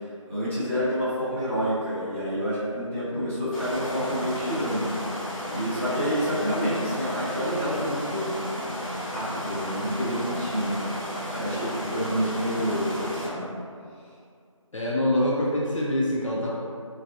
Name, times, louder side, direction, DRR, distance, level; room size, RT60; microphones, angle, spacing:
voice 1, 0.3-4.9 5.5-8.3 9.0-11.0 11.3-13.5, equal, 25° left, -15 dB, 0.9 m, -28 dB
sound 1, 3.5-13.3, equal, 80° left, 1.4 m, -33 dB
voice 2, 14.7-16.5, left 1 dB, 65° left, -5 dB, 0.5 m, -25 dB
3.3 x 2.4 x 2.5 m, 2.3 s
figure-of-eight pair, 180°, 17 cm